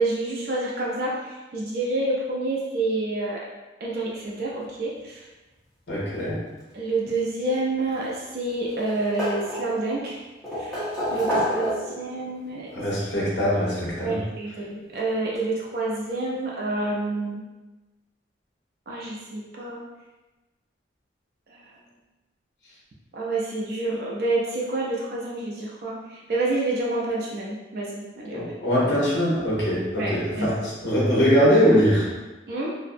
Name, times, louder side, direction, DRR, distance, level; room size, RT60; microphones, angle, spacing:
voice 1, 0.0-3.4 3.8-5.3 6.7-10.2 10.6-10.8 11.1-12.7 14.0-17.4 18.9-19.8 21.5-21.7 23.1-28.4 29.9-30.6 32.5-32.7, right 2 dB, 55° right, -3 dB, 0.4 m, -28 dB
voice 2, 5.9-6.4 12.7-14.2 28.3-32.1, equal, 70° left, -6 dB, 0.8 m, -22 dB
sound 1, 7.8-8.5 8.8-9.9 10.4-12.1 13.3-13.4 14.9-15.0 15.3-15.4, equal, ahead, 0.8 m, -28 dB
2.5 x 2.0 x 2.5 m, 1.1 s
head